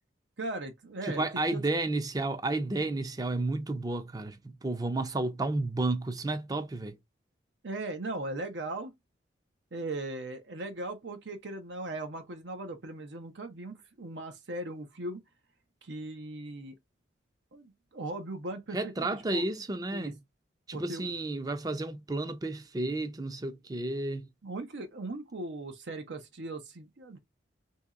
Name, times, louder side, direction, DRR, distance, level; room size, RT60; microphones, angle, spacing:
voice 1, 0.4-1.2 1.5-1.6 7.6-8.9 9.7-15.2 15.8-16.7 17.5-19.5 19.9-20.1 20.7-21.1 24.4-27.2, right 2 dB, 80° right, 0.7 m, -38 dB
voice 2, 1.0-7.0 18.7-20.2 20.7-24.3, right 2 dB, 20° right, 0.4 m, -32 dB
2.8 x 2.8 x 3.6 m
head